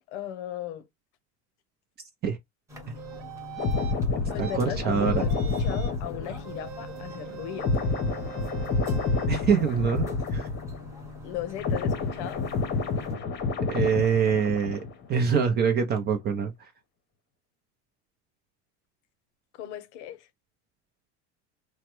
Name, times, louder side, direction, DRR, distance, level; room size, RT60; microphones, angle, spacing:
voice 1, 0.1-0.8 4.3-7.7 11.2-12.4 19.6-20.3, left 11 dB, 90° left, 0.7 m, -37 dB
sound 1, 2.7-13.2, left 3 dB, 10° right, 0.9 m, -44 dB
sound 2, 2.9-4.0 4.4-4.6 5.0-6.0 6.4-9.3, right 11 dB, 60° right, 1.2 m, -42 dB
sound 3, 3.6-11.1 11.3-15.1 15.3-15.6, left 4 dB, 30° left, 0.8 m, -29 dB
voice 2, 4.4-5.3 9.3-10.5 13.7-14.8 15.1-16.5, right 6 dB, 30° right, 0.5 m, -24 dB
3.0 x 2.2 x 3.0 m
supercardioid pair, 135°, 33 cm